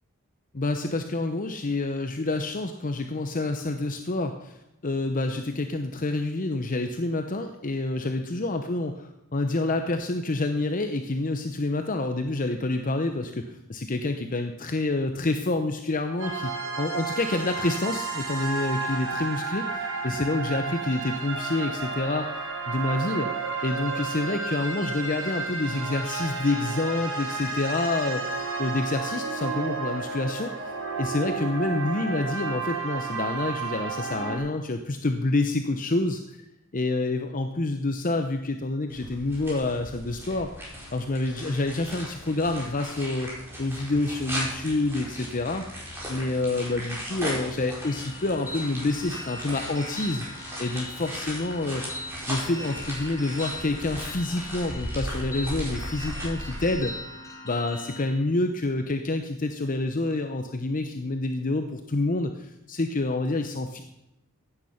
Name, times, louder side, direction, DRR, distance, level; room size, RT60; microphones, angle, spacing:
voice 1, 0.5-22.3 22.7-23.3 23.6-36.4 36.7-40.5 40.9-43.3 43.6-50.2 50.6-51.8 52.3-56.9 57.4-63.8, left 2 dB, 40° left, 6 dB, 0.8 m, -28 dB
sound 1, 16.2-34.4, right 4 dB, 60° right, 4.0 m, -32 dB
sound 2, 38.9-56.7, equal, 10° right, 5.0 m, -37 dB
sound 3, 47.8-58.1, left 1 dB, 15° left, 2.3 m, -40 dB
15.5 x 9.4 x 5.8 m, 0.87 s
head